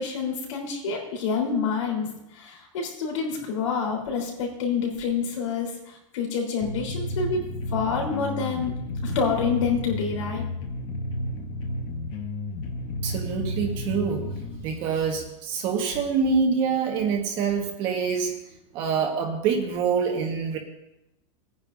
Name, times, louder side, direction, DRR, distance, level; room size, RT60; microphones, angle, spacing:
voice 1, 0.0-7.4 7.7-8.7 9.0-10.4, left 5 dB, 75° left, 0 dB, 3.7 m, -27 dB
sound 1, 6.6-14.6, left 1 dB, 25° left, 0.8 m, -32 dB
voice 2, 13.0-14.2 14.6-18.3 18.7-20.6, right 5 dB, 30° right, 2 dB, 1.3 m, -25 dB
21.0 x 9.7 x 2.6 m, 0.86 s
supercardioid pair, 180°, 16 cm